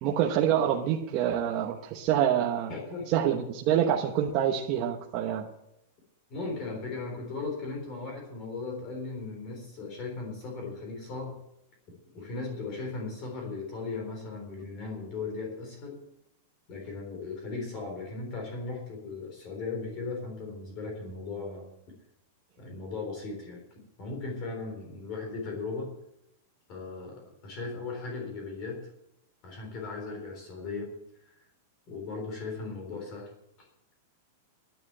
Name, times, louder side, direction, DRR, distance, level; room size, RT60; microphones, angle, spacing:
voice 1, 0.0-2.7 3.1-5.4, right 10 dB, 30° right, 1 dB, 1.1 m, -26 dB
voice 2, 2.7-3.1 6.3-11.4 12.1-16.0 16.7-21.7 22.6-25.9 26.7-28.8 29.4-30.9 31.2-31.3 31.9-33.3, left 3 dB, 30° left, 1 dB, 3.7 m, -37 dB
10.5 x 10.5 x 8.7 m, 0.83 s
supercardioid pair, 175°, 0 cm